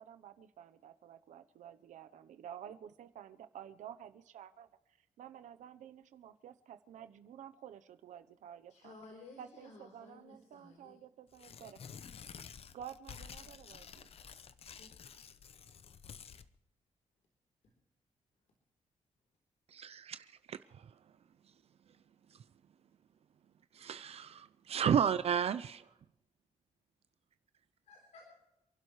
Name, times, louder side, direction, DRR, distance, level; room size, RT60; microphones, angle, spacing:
voice 1, 0.0-4.7 5.2-8.9 9.4-11.8 12.7-14.1, right 9 dB, 90° right, 0.9 m, -51 dB
voice 2, 8.7-11.0 14.6-14.9 27.8-28.3, left 3 dB, 80° left, 3.8 m, -55 dB
Tearing, 11.3-16.5, left 7 dB, 55° left, 0.8 m, -51 dB
voice 3, 19.7-20.6 23.7-25.8, right 8 dB, 55° right, 0.5 m, -32 dB
28.0 x 12.0 x 3.2 m
cardioid pair, 125°, 12 cm